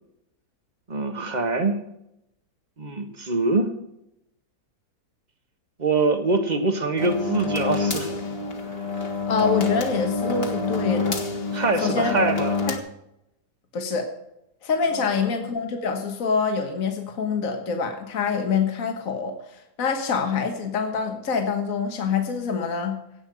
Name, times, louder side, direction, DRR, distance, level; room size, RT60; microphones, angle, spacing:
voice 1, 0.9-1.8 2.8-3.7 5.8-8.1 11.5-12.5 14.9-15.1, right 3 dB, 30° right, 6 dB, 1.5 m, -24 dB
sound 1, 7.0-12.8, left 4 dB, 40° left, 1.8 m, -27 dB
voice 2, 9.0-11.2 11.8-12.2 12.7-12.8 13.7-14.1 14.6-19.3 19.8-23.0, left 5 dB, 60° left, 4 dB, 1.8 m, -25 dB
17.0 x 5.7 x 7.9 m, 0.82 s
omnidirectional pair, 1.7 m